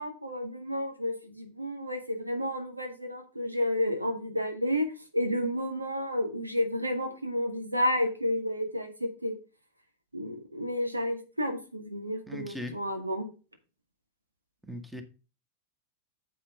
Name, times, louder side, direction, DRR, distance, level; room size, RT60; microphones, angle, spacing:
voice 1, 0.0-4.9 5.1-9.3 10.1-13.2, left 1 dB, 85° right, 2.0 m, -31 dB
voice 2, 12.3-12.8 14.6-15.0, left 1 dB, 5° right, 1.6 m, -39 dB
9.6 x 7.5 x 3.6 m
figure-of-eight pair, 90°, 0 cm